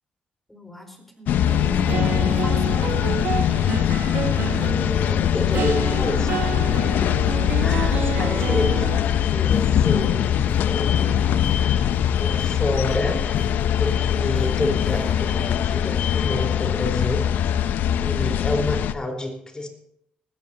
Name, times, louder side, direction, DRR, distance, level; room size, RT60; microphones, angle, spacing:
voice 1, 0.5-3.2, left 1 dB, 5° left, 4 dB, 4.2 m, -41 dB
sound 1, 1.3-18.9, left 10 dB, 85° left, 0.6 m, -22 dB
sound 2, 1.4-9.0, right 8 dB, 85° right, 0.9 m, -30 dB
voice 2, 4.6-6.6 7.5-8.9 9.2-10.2 10.7-11.3 12.2-13.2 13.8-17.5 18.0-19.7, left 2 dB, 25° left, 4 dB, 4.2 m, -29 dB
sound 3, 9.0-9.7 10.0-10.7 10.9-17.2, left 5 dB, 45° left, 3.3 m, -37 dB
19.5 x 14.5 x 2.8 m, 0.74 s
cardioid pair, 90°, 3 cm